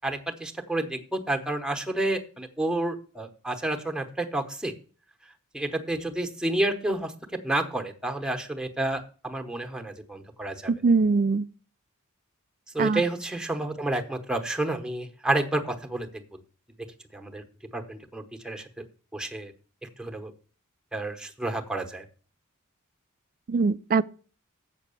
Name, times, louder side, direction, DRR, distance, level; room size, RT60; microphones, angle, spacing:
voice 1, 0.0-4.7 5.5-7.1 7.4-10.7 12.7-16.1 17.1-17.4 17.7-18.7 19.1-19.5 19.8-20.3 20.9-22.0, right 2 dB, 5° right, 0.9 m, -30 dB
voice 2, 10.7-11.5 12.8-13.0 23.5-24.0, right 4 dB, 40° right, 0.3 m, -22 dB
7.5 x 5.9 x 6.9 m
head